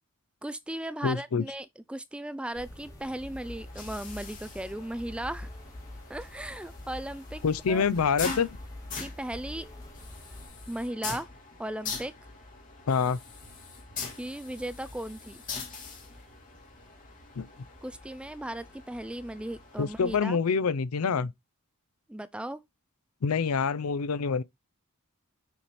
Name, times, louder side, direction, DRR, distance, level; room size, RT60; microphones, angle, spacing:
voice 1, 0.4-5.5 6.1-7.4 7.7-7.8 9.0-9.7 10.7-11.3 11.6-12.1 14.1-15.4 17.8-20.4 22.1-22.6, right 1 dB, 5° right, 0.3 m, -37 dB
voice 2, 1.0-1.4 7.4-8.5 12.9-13.2 17.4-17.5 19.8-21.3 23.2-24.4, left 5 dB, 80° left, 0.5 m, -26 dB
sound 1, 2.5-10.5, left 1 dB, 15° left, 2.2 m, -45 dB
sound 2, 3.4-20.2, left 4 dB, 40° left, 2.3 m, -43 dB
7.0 x 4.2 x 3.2 m
head